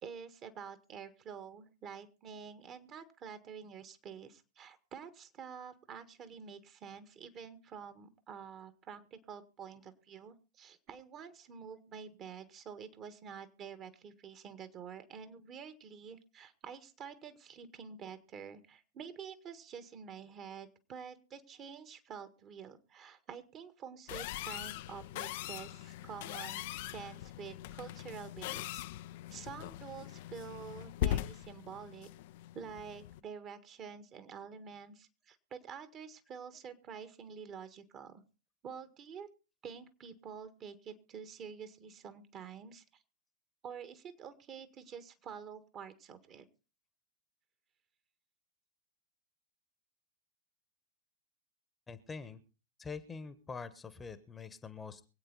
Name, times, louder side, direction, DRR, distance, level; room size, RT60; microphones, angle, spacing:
voice 1, 0.0-28.9 29.3-32.1 32.5-38.2 38.6-39.3 39.6-42.8 43.6-46.5, right 7 dB, 30° right, 11 dB, 1.7 m, -48 dB
sound 1, 24.1-33.2, left 13 dB, 50° left, 0.6 m, -41 dB
voice 2, 51.9-52.4 52.8-55.0, left 5 dB, 15° left, 14 dB, 1.2 m, -45 dB
24.0 x 8.8 x 4.1 m, 0.33 s
figure-of-eight pair, 90°, 0 cm